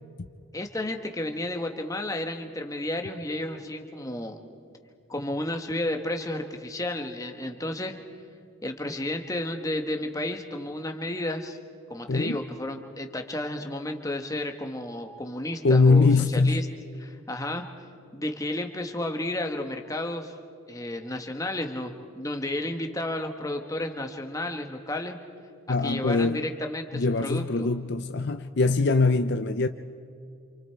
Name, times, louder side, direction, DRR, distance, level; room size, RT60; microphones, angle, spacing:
voice 1, 0.5-4.4 5.1-8.0 8.6-11.6 11.9-16.1 16.3-16.7 17.0-17.7 18.1-20.3 20.7-25.2 25.8-27.7, left 1 dB, 15° left, 4 dB, 1.3 m, -32 dB
voice 2, 12.1-12.4 15.6-16.7 25.7-26.4 26.9-29.7, left 3 dB, 50° left, 9 dB, 0.6 m, -22 dB
28.0 x 28.0 x 4.6 m, 2.5 s
head